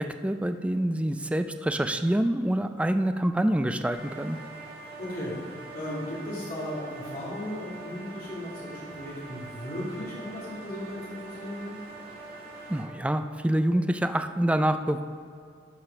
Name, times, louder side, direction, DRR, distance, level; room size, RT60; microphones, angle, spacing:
voice 1, 0.0-4.4 12.7-15.0, right 1 dB, 5° right, 8 dB, 0.3 m, -26 dB
sound 1, 3.9-12.8, right 2 dB, 60° right, 2.2 m, -44 dB
voice 2, 5.0-5.4 5.7-11.8, left 1 dB, 50° left, -8 dB, 2.8 m, -36 dB
12.0 x 4.9 x 6.0 m, 2.3 s
head